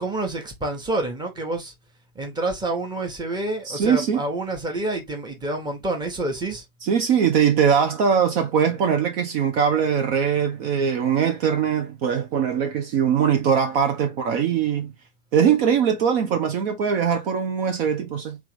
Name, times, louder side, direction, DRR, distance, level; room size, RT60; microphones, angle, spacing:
voice 1, 0.0-1.7 2.1-6.6, right 2 dB, 10° right, 1.3 m, -28 dB
voice 2, 3.6-4.2 6.8-14.9 15.3-18.4, right 7 dB, 45° right, 0.9 m, -21 dB
3.6 x 3.1 x 3.3 m
hypercardioid pair, 115°, 43 cm